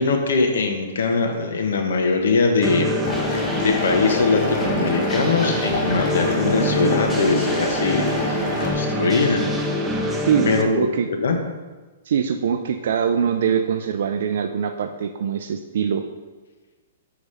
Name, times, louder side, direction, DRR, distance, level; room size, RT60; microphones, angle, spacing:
voice 1, 0.0-2.9 3.3-9.5 10.5-10.9 11.2-11.4, left 4 dB, 75° left, 3 dB, 0.9 m, -21 dB
sound 1, 2.6-10.6, equal, 5° right, 0.5 m, -25 dB
sound 2, 3.0-8.7, left 4 dB, 40° left, 0.9 m, -27 dB
voice 2, 10.3-11.1 12.1-16.0, right 7 dB, 60° right, 7 dB, 0.4 m, -23 dB
5.0 x 4.7 x 5.4 m, 1.3 s
hypercardioid pair, 165°, 0 cm